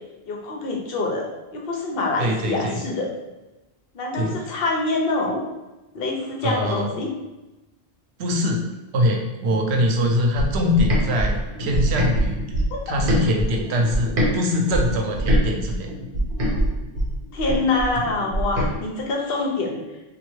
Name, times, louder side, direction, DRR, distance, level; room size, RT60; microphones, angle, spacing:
voice 1, 0.3-3.1 3.9-5.4 5.9-7.1 12.7-12.8 17.3-19.8, left 3 dB, 65° left, 0 dB, 0.8 m, -25 dB
voice 2, 2.2-2.8 4.1-4.4 6.4-6.9 8.2-8.7 8.9-12.4 12.9-15.9, left 1 dB, 90° right, 1 dB, 0.8 m, -23 dB
sound 1, 10.4-14.3 14.7-18.7, right 1 dB, 60° right, 0.9 m, -23 dB
3.2 x 2.3 x 3.0 m, 1.0 s
omnidirectional pair, 1.1 m